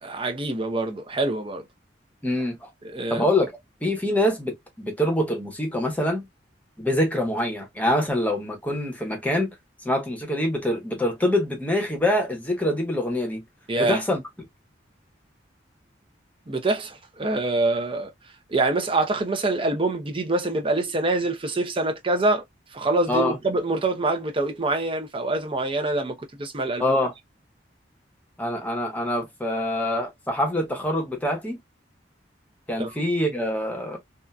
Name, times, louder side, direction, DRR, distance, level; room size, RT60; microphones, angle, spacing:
voice 1, 0.0-1.6 2.8-3.2 13.7-14.0 16.5-18.1 18.5-22.4 22.7-27.0 32.8-32.9, right 2 dB, 30° right, 0.6 m, -25 dB
voice 2, 2.2-2.7 3.1-3.5 3.8-6.3 6.8-9.5 9.8-13.4 13.8-14.2 23.1-23.4 26.8-27.1 28.4-31.6 32.7-34.0, left 1 dB, 10° left, 0.9 m, -25 dB
2.7 x 2.4 x 2.2 m
head